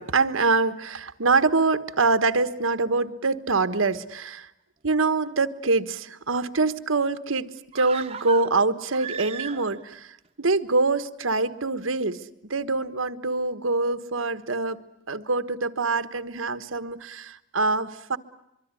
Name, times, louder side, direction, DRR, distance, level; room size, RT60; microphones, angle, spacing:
voice 1, 0.0-4.5 4.8-12.2 12.5-14.8 15.1-18.2, right 3 dB, 90° right, 10 dB, 1.4 m, -25 dB
sound 1, 7.7-10.0 10.2-10.3, right 6 dB, 30° right, 1.0 m, -37 dB
25.0 x 24.0 x 9.8 m, 0.83 s
head